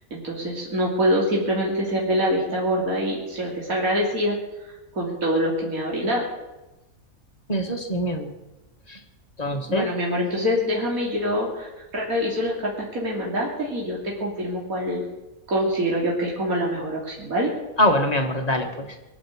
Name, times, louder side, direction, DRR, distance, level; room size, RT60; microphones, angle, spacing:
voice 1, 0.1-4.4 4.9-6.3 9.7-15.0 15.5-17.5, equal, 70° right, -3 dB, 3.5 m, -25 dB
voice 2, 7.5-8.3 8.9-9.0 9.4-9.9 17.8-18.9, left 1 dB, 25° left, 3 dB, 1.7 m, -23 dB
22.0 x 7.8 x 8.4 m, 1.0 s
omnidirectional pair, 1.5 m